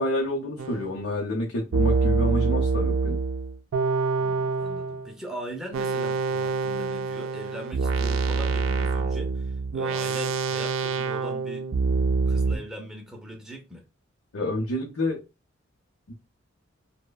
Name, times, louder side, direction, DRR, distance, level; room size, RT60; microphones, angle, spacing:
voice 1, 0.0-3.2 14.3-15.2 16.1-16.2, left 1 dB, 80° left, 0.6 m, -28 dB
sound 1, 0.6-0.9 1.7-5.1 5.7-12.6, right 4 dB, 80° right, 0.4 m, -26 dB
voice 2, 4.2-11.7 12.3-13.9, equal, ahead, 0.5 m, -40 dB
3.2 x 2.1 x 2.2 m
head